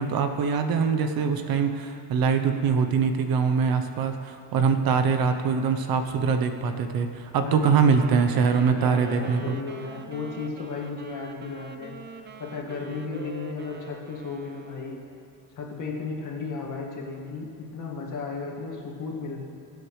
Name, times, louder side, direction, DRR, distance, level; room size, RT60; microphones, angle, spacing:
voice 1, 0.0-9.6, right 6 dB, 50° right, 7 dB, 0.8 m, -23 dB
voice 2, 7.4-8.5 8.8-12.0 12.4-15.0 15.6-19.5, left 4 dB, 40° left, -1 dB, 2.0 m, -35 dB
Wind instrument woodwind instrument, 7.9-15.3, right 4 dB, 25° right, 0.6 m, -43 dB
22.5 x 8.0 x 3.2 m, 2.6 s
cardioid pair, 150°, 45 cm